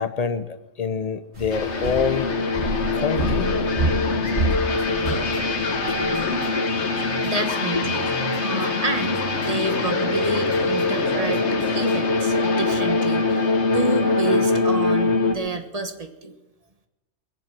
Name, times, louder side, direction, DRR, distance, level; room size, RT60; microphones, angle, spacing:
voice 1, 0.0-2.3 2.9-3.6 5.6-6.6, left 5 dB, 35° left, 11 dB, 0.9 m, -27 dB
sound 1, 1.3-6.3, right 2 dB, 65° right, 4.1 m, -29 dB
sound 2, 1.5-15.4, left 3 dB, 75° left, 1.6 m, -23 dB
sound 3, 4.3-12.0, equal, 20° left, 2.3 m, -37 dB
voice 2, 7.2-8.1 8.4-11.5 11.7-16.3, right 3 dB, 35° right, 7 dB, 1.4 m, -29 dB
21.0 x 7.3 x 7.6 m, 1.0 s
omnidirectional pair, 1.2 m